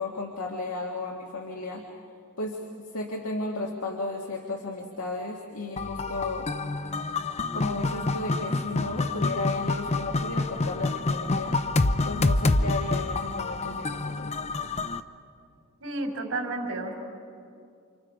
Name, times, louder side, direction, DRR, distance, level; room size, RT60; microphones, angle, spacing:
voice 1, 0.0-1.8 2.4-6.5 7.5-11.6 12.0-14.3, left 2 dB, 85° left, 0 dB, 1.9 m, -34 dB
sound 1, 5.8-15.0, left 2 dB, 30° left, 0.6 m, -27 dB
voice 2, 15.8-16.9, right 2 dB, 70° right, 1 dB, 4.4 m, -31 dB
29.0 x 27.0 x 5.0 m, 2.4 s
head